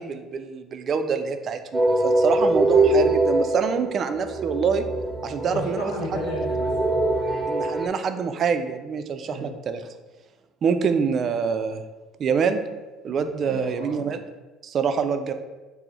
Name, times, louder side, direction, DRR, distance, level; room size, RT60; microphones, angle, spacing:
voice 1, 0.0-4.8 5.2-5.9 7.5-9.8 10.6-11.8 12.2-12.6 13.0-14.2 14.6-15.3, right 6 dB, 50° right, 8 dB, 0.3 m, -25 dB
sound 1, 1.7-7.9, right 2 dB, 15° right, 0.7 m, -23 dB
voice 2, 5.4-7.1 9.2-9.5 13.1-14.1, left 1 dB, 75° left, -2 dB, 0.9 m, -34 dB
4.1 x 2.0 x 4.0 m, 1.2 s
hypercardioid pair, 60°, 0 cm